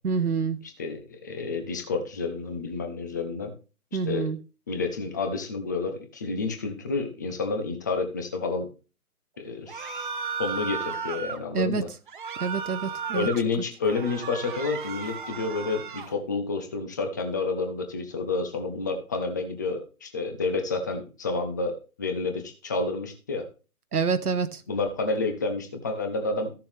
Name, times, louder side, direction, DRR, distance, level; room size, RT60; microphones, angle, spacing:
voice 1, 0.0-0.6 3.9-4.4 11.5-11.8 12.4-13.3 23.9-24.6, right 5 dB, 85° right, 0.9 m, -27 dB
voice 2, 0.6-3.5 3.9-4.4 4.7-8.7 9.4-10.1 10.4-11.9 13.1-23.5 24.7-26.5, left 3 dB, 15° left, 0.6 m, -30 dB
Cry of fear - Collective, 9.7-11.4 12.1-13.4 13.8-16.1, right 6 dB, 35° right, 0.9 m, -34 dB
14.0 x 6.8 x 3.4 m
figure-of-eight pair, 140°, 45 cm